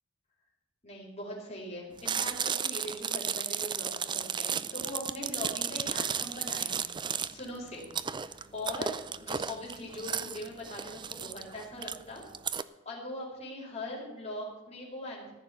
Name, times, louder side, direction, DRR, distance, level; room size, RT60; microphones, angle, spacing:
voice 1, 0.8-6.9 7.3-7.9 8.2-12.2 12.5-15.3, left 1 dB, 35° left, -4 dB, 4.7 m, -41 dB
Chewing mastication, 2.0-12.6, right 7 dB, 25° right, 0.4 m, -34 dB
14.5 x 6.9 x 8.5 m, 1.1 s
head